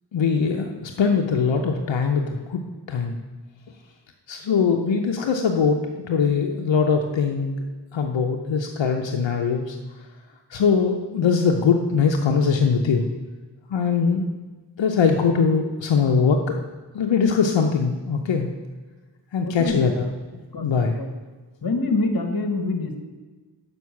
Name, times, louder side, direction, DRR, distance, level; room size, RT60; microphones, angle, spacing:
voice 1, 0.1-2.6 2.9-3.2 4.3-7.6 7.9-9.8 10.5-13.0 13.7-14.2 14.8-16.6 16.9-18.5 19.3-20.0 20.6-21.0, left 5 dB, 85° left, 3 dB, 0.7 m, -21 dB
voice 2, 19.4-19.9 20.5-21.1 21.6-23.0, left 2 dB, 55° left, 5 dB, 1.3 m, -25 dB
6.3 x 5.4 x 7.0 m, 1.3 s
wide cardioid pair, 60°, 44 cm